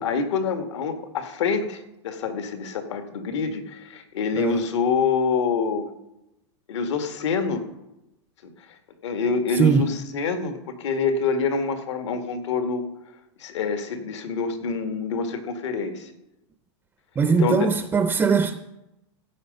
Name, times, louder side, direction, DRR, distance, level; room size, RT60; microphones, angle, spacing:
voice 1, 0.0-5.9 6.7-7.7 9.0-12.8 13.4-16.1 17.3-17.7, left 5 dB, 80° left, 1.9 m, -26 dB
voice 2, 4.4-4.7 9.5-10.0 17.2-18.5, right 5 dB, 10° right, 0.5 m, -21 dB
15.0 x 8.1 x 5.4 m
supercardioid pair, 150°, 15 cm